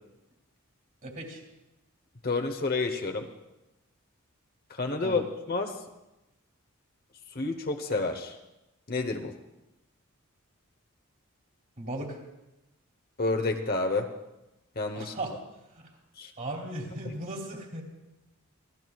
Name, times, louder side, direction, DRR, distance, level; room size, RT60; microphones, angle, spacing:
voice 1, 1.0-1.4 5.0-5.2 11.8-12.2 14.9-15.3 16.4-17.8, right 1 dB, 40° right, 0 dB, 2.8 m, -36 dB
voice 2, 2.2-3.3 4.7-5.2 5.5-5.8 7.3-8.4 8.9-9.3 13.2-14.1 14.8-15.1 16.2-16.3 17.0-17.1, left 3 dB, 45° left, 4 dB, 1.0 m, -29 dB
27.5 x 14.5 x 2.4 m, 0.95 s
head